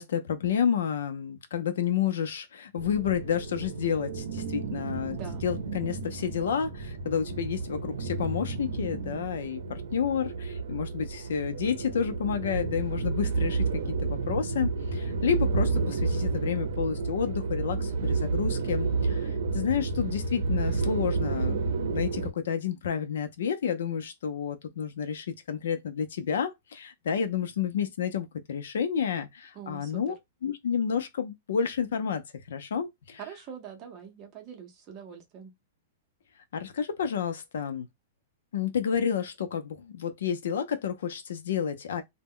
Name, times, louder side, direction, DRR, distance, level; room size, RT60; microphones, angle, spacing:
voice 1, 0.0-5.2 5.4-13.7 14.0-19.2 19.5-30.1 30.4-33.2 36.5-37.9 38.5-42.0, left 7 dB, 80° left, 0.5 m, -30 dB
sound 1, 2.8-22.3, right 4 dB, 75° right, 0.6 m, -31 dB
voice 2, 5.1-5.4 29.5-30.1 33.2-35.5, right 7 dB, 25° right, 0.7 m, -44 dB
2.1 x 2.1 x 3.6 m
supercardioid pair, 175°, 0 cm